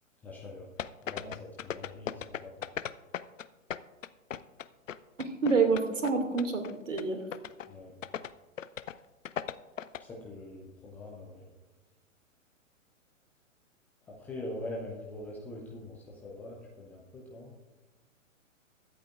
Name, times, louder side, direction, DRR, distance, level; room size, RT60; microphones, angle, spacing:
voice 1, 0.2-0.7 1.0-2.7 7.7-7.9 10.0-11.4 14.1-17.5, left 1 dB, 5° left, -3 dB, 0.4 m, -43 dB
sound 1, 0.8-3.5 3.7-6.1 6.4-6.7 7.0-7.1 7.3-7.7 8.0-8.3 8.6-8.9 9.2-10.0, left 9 dB, 70° left, 0.6 m, -37 dB
voice 2, 5.2-7.2, right 4 dB, 65° right, 4 dB, 2.4 m, -27 dB
22.5 x 8.3 x 2.5 m, 1.2 s
figure-of-eight pair, 120°, 40 cm